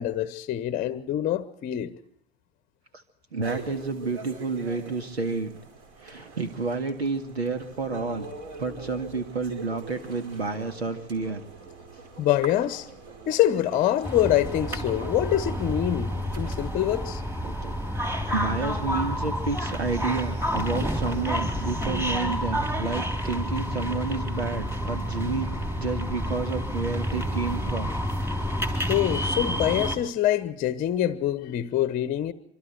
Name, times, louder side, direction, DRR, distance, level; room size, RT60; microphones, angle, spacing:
voice 1, 0.0-1.9 12.2-12.9 13.3-17.2 28.9-32.3, left 12 dB, 25° left, 1.1 m, -25 dB
voice 2, 3.3-5.5 6.0-8.3 8.6-11.4 11.9-12.0 17.4-17.8 18.3-25.5 25.8-27.9, right 4 dB, 75° right, 2.2 m, -30 dB
sound 1, 3.4-17.1, right 3 dB, 45° right, 5.5 m, -43 dB
sound 2, 14.0-30.0, equal, 5° right, 3.3 m, -29 dB
26.0 x 25.0 x 4.5 m
figure-of-eight pair, 90°, 32 cm